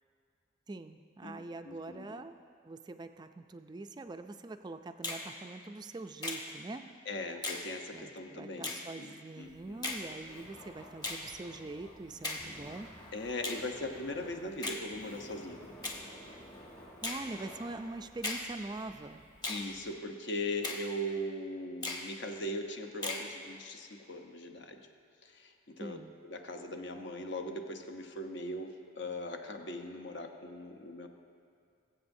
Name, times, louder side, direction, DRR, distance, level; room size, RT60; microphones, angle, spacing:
voice 1, 0.7-2.4 2.6-6.9 7.9-12.9 17.0-19.2 25.8-26.1, right 2 dB, 20° right, 8 dB, 0.3 m, -44 dB
voice 2, 1.2-2.2 7.1-9.9 13.1-15.7 19.5-24.9 25.2-26.0 26.2-31.1, left 1 dB, 60° left, 5 dB, 0.8 m, -40 dB
Finger snapping, 5.0-5.3 6.2-6.4 7.4-7.7 8.6-8.8 9.8-10.0 11.0-11.2 12.2-12.5 13.4-13.6 14.6-14.8 15.8-16.0 17.0-17.2 18.2-18.5 19.4-19.6 20.6-20.8 21.8-22.1 23.0-23.3, left 2 dB, 20° left, 0.9 m, -36 dB
Laughter, 9.4-19.9, equal, 35° left, 2.0 m, -54 dB
21.5 x 7.9 x 2.7 m, 2.3 s
head